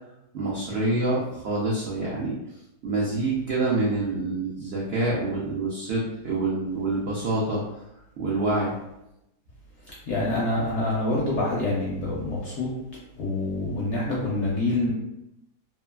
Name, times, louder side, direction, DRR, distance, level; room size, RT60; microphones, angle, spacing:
voice 1, 0.3-2.4 2.8-7.6 8.2-8.7, right 2 dB, 80° right, -5 dB, 0.5 m, -26 dB
voice 2, 10.1-12.7 13.2-14.9, left 2 dB, 65° left, -4 dB, 0.7 m, -26 dB
2.9 x 2.3 x 2.2 m, 0.88 s
omnidirectional pair, 1.7 m